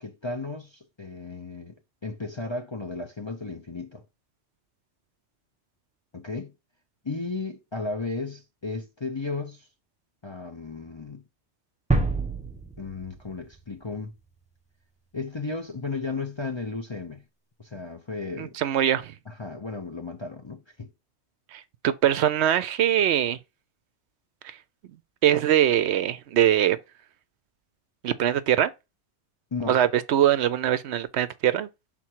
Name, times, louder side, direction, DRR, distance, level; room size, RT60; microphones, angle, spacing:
voice 1, 0.0-1.7 2.0-4.0 6.1-6.5 7.0-9.7 10.2-11.2 12.8-14.1 15.1-17.2 17.6-18.6 19.3-20.9 29.5-29.8, left 3 dB, 30° left, 0.5 m, -34 dB
sound 1, 11.9-13.8, right 2 dB, 5° right, 0.7 m, -27 dB
voice 2, 18.4-19.1 21.5-23.4 24.4-24.6 25.2-26.8 28.0-28.7 29.7-31.7, right 11 dB, 70° right, 0.8 m, -22 dB
6.0 x 3.8 x 4.5 m
omnidirectional pair, 1.2 m